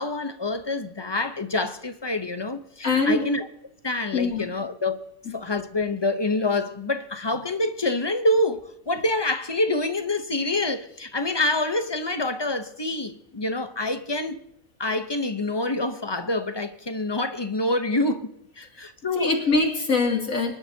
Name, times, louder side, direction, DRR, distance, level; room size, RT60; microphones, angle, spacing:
voice 1, 0.0-3.5 3.8-5.1 5.3-14.4 14.8-18.3 18.6-19.3, left 2 dB, 25° left, 0.6 m, -26 dB
voice 2, 2.8-3.3 4.1-4.5 19.1-20.5, left 3 dB, 75° left, 3.0 m, -23 dB
24.5 x 12.0 x 2.8 m
omnidirectional pair, 1.4 m